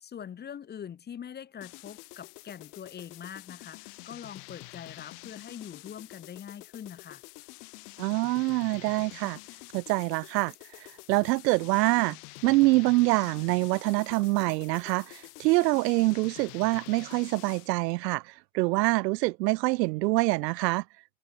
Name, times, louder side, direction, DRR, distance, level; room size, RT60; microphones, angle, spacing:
voice 1, 0.0-7.2, left 8 dB, 20° left, 1.0 m, -43 dB
sound 1, 1.6-17.8, left 29 dB, 70° left, 5.7 m, -47 dB
voice 2, 8.0-9.4 9.7-10.5 11.1-12.2 12.4-20.8, right 22 dB, 85° right, 0.8 m, -25 dB
supercardioid pair, 135°, 48 cm